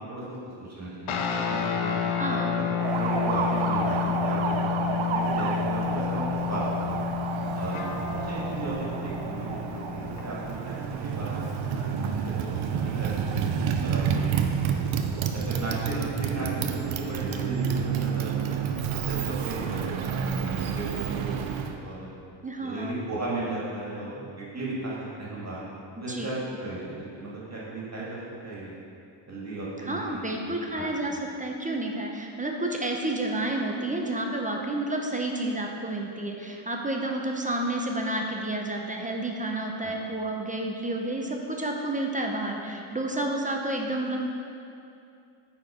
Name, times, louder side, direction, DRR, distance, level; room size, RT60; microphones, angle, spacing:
voice 1, 0.1-2.0 2.4-2.6 2.9-7.0 7.5-7.9 8.2-14.5 14.7-14.9 15.3-18.6 18.9-22.1 22.6-24.9 25.2-25.6 26.0-28.7 29.3-30.2 30.8-30.9 39.8-39.9, right 2 dB, 30° right, -6 dB, 2.0 m, -36 dB
sound 1, 1.1-10.8, left 8 dB, 85° left, 0.8 m, -30 dB
voice 2, 2.0-2.6 22.4-22.9 26.0-26.3 29.8-44.2, right 1 dB, 15° right, 1 dB, 0.6 m, -30 dB
Motorcycle, 2.8-21.8, right 6 dB, 75° right, 0.7 m, -29 dB
9.0 x 4.4 x 5.0 m, 2.5 s
wide cardioid pair, 130°, 48 cm